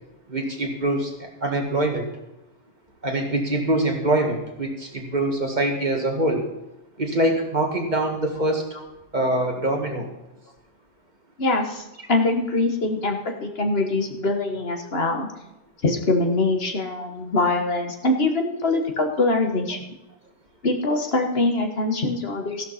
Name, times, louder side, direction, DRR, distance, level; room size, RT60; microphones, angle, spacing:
voice 1, 0.3-2.0 3.0-6.4 7.0-8.7 9.1-10.1, right 1 dB, 40° right, 2 dB, 2.1 m, -24 dB
voice 2, 11.4-15.3 15.8-19.8 20.6-22.6, left 2 dB, 60° left, 4 dB, 1.7 m, -23 dB
14.0 x 12.0 x 4.2 m, 0.95 s
omnidirectional pair, 1.2 m